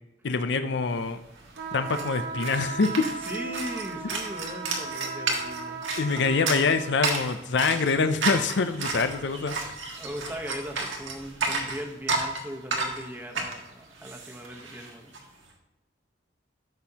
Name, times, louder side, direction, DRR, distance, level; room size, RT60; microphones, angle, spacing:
voice 1, 0.2-1.2 1.7-3.0 6.0-9.6, left 4 dB, 65° left, 9 dB, 0.5 m, -25 dB
sound 1, 1.1-1.2 1.3-15.2, right 3 dB, 90° right, 1.6 m, -32 dB
sound 2, 1.6-7.0, right 4 dB, 60° right, 1.1 m, -37 dB
voice 2, 3.3-5.8 10.0-15.1, equal, 10° right, 2 dB, 1.1 m, -39 dB
13.5 x 6.1 x 2.9 m, 1.0 s
head